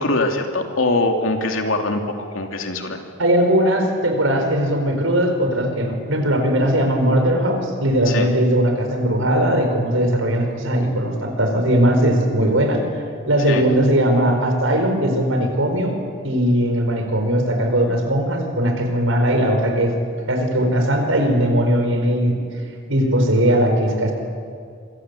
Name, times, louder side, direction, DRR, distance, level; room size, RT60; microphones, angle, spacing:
voice 1, 0.0-2.0 2.3-3.0 8.1-8.3 13.5-13.6, left 2 dB, 80° left, 4 dB, 3.0 m, -22 dB
voice 2, 3.2-12.9 13.3-16.0 16.2-20.0 20.3-22.4 22.9-24.1, right 1 dB, 80° right, 4 dB, 5.2 m, -19 dB
27.5 x 24.0 x 8.5 m, 2.2 s
head